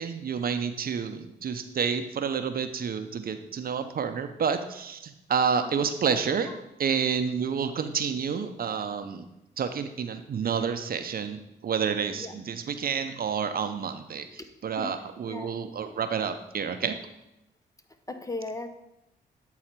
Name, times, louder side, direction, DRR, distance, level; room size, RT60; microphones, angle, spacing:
voice 1, 0.0-6.5 6.8-9.2 9.6-14.3 14.6-17.0, right 6 dB, 50° right, 9 dB, 0.6 m, -29 dB
voice 2, 5.6-5.9 6.5-6.6 12.1-12.4 14.8-14.9 15.3-15.5 18.1-18.7, left 2 dB, 15° left, 8 dB, 0.7 m, -37 dB
8.6 x 3.9 x 4.5 m, 0.86 s
supercardioid pair, 65°, 19 cm